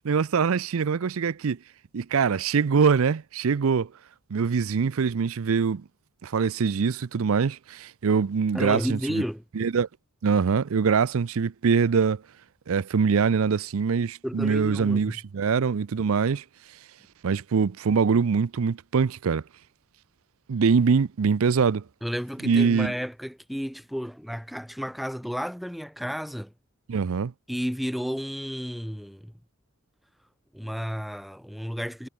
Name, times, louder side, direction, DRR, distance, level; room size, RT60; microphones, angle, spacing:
voice 1, 0.0-1.6 1.9-3.9 4.3-5.8 6.2-9.0 9.6-9.9 10.2-12.2 12.7-16.4 17.2-19.4 20.5-21.8 22.4-22.9 26.9-27.3, right 5 dB, 65° right, 0.5 m, -23 dB
voice 2, 8.5-9.4 14.2-15.2 22.0-26.5 27.5-29.3 30.5-32.1, equal, ahead, 0.8 m, -32 dB
head